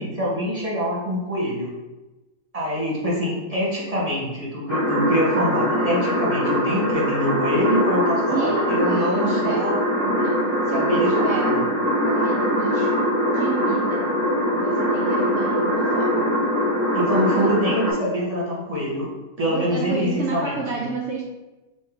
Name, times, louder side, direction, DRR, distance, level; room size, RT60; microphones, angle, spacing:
voice 1, 0.0-1.7 2.5-9.7 10.7-11.6 16.9-19.1 19.4-20.8, equal, 25° right, -6 dB, 1.1 m, -25 dB
sound 1, 4.7-17.9, equal, 90° left, 1.8 m, -22 dB
voice 2, 8.3-9.7 10.2-11.6 12.0-14.1 14.5-16.5 16.9-17.8 19.5-21.2, right 4 dB, 65° right, 0 dB, 0.8 m, -31 dB
3.6 x 3.0 x 4.5 m, 1.1 s
omnidirectional pair, 1.5 m